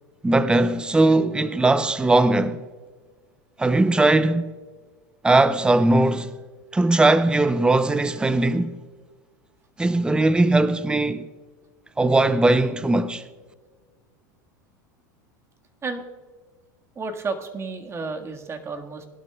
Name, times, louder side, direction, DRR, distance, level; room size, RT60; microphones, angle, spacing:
voice 1, 0.2-2.6 3.6-4.5 5.2-6.3 6.7-8.8 9.8-11.3 12.0-13.2, right 2 dB, 10° right, 0.6 m, -19 dB
voice 2, 16.9-19.1, right 4 dB, 25° right, 1.6 m, -31 dB
20.0 x 12.0 x 2.3 m
hypercardioid pair, 100°, 11 cm